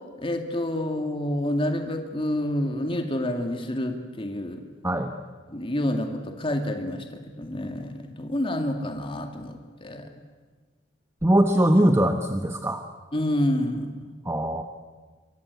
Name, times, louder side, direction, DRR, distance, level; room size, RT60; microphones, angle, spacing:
voice 1, 0.2-4.6 5.5-10.1 13.1-14.1, left 1 dB, 30° left, 4 dB, 2.3 m, -28 dB
voice 2, 11.2-12.8 14.2-14.6, right 1 dB, 15° right, 6 dB, 1.2 m, -21 dB
27.5 x 24.0 x 8.3 m, 1.4 s
head